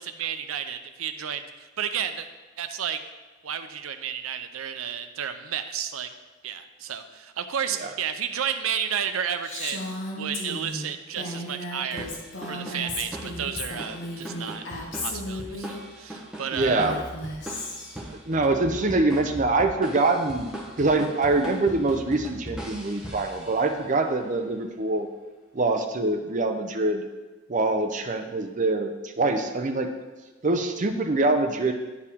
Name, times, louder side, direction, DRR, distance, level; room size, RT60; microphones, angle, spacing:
voice 1, 0.0-2.3 2.6-3.0 3.4-6.1 6.4-9.8 10.2-12.1 12.5-14.6 15.0-16.9, right 8 dB, 90° right, 9 dB, 0.5 m, -32 dB
Female speech woman speaking, 9.4-15.8 16.6-18.0, left 1 dB, 60° left, 1.3 m, -35 dB
sound 1, 12.0-23.9, right 1 dB, 5° right, 1.0 m, -40 dB
voice 2, 16.5-17.0 18.3-20.5 20.8-25.1 25.5-27.1 27.5-29.9 30.4-31.7, right 2 dB, 40° right, 6 dB, 0.6 m, -24 dB
9.9 x 4.8 x 3.6 m, 1.2 s
head